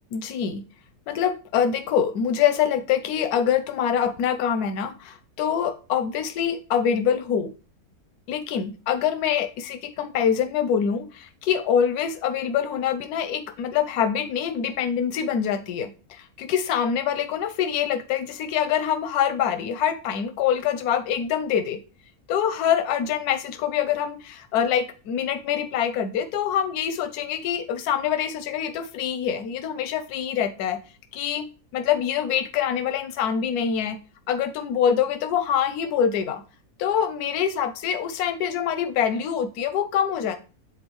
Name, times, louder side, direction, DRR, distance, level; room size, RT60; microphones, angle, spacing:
voice 1, 0.1-0.6 1.1-7.5 8.3-21.8 22.3-30.8 31.1-34.0 34.3-36.4 36.8-40.4, left 8 dB, 90° left, 10 dB, 1.2 m, -25 dB
7.9 x 4.0 x 3.1 m, 0.35 s
omnidirectional pair, 1.6 m